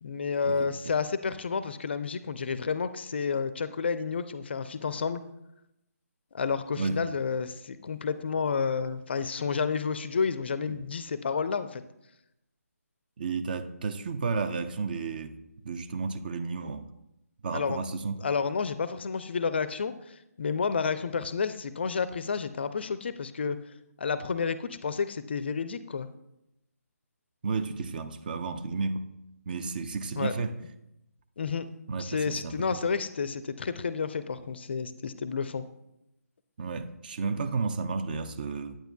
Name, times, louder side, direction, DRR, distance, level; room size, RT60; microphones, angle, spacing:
voice 1, 0.0-5.2 6.3-11.8 17.5-17.8 18.2-23.6 24.0-26.1 30.2-30.3 31.4-31.7 32.0-35.7, left 5 dB, 40° left, 0.4 m, -30 dB
voice 2, 6.8-7.1 10.7-10.8 13.2-15.4 15.6-16.8 17.4-18.2 27.4-29.1 29.5-30.5 31.9-32.8 36.6-38.8, right 4 dB, 35° right, 0.5 m, -32 dB
8.9 x 8.9 x 2.2 m
figure-of-eight pair, 145°, 9 cm